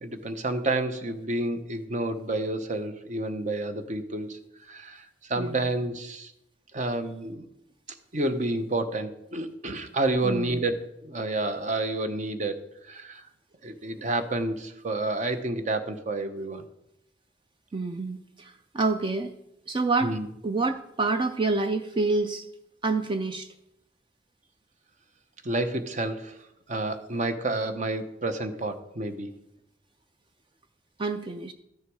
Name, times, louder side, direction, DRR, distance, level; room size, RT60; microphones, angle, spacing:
voice 1, 0.0-4.4 4.7-6.3 6.7-7.5 8.1-10.8 11.0-12.5 12.9-13.2 13.6-16.6 20.0-20.3 25.4-26.3 26.7-29.3, right 2 dB, 45° right, 9 dB, 0.8 m, -29 dB
voice 2, 5.4-5.7 10.2-10.6 17.7-19.3 19.7-20.1 20.4-22.4 22.8-23.5 31.0-31.5, right 3 dB, 30° right, 8 dB, 0.4 m, -27 dB
13.0 x 6.5 x 4.7 m, 0.85 s
head